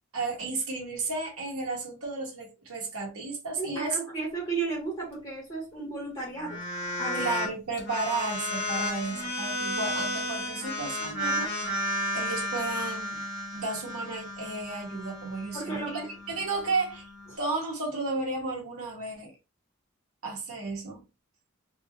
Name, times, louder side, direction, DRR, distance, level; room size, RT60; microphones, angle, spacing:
voice 1, 0.1-4.0 7.1-11.5 12.1-13.2 13.5-16.0 16.3-17.1 17.4-19.3 20.2-21.0, right 3 dB, 80° right, 1.3 m, -33 dB
voice 2, 3.6-6.6 7.0-7.3 15.5-16.1, right 3 dB, 25° left, 1.5 m, -34 dB
sound 1, 6.4-7.5 7.8-17.3, equal, 45° left, 1.6 m, -33 dB
3.5 x 2.6 x 2.9 m
head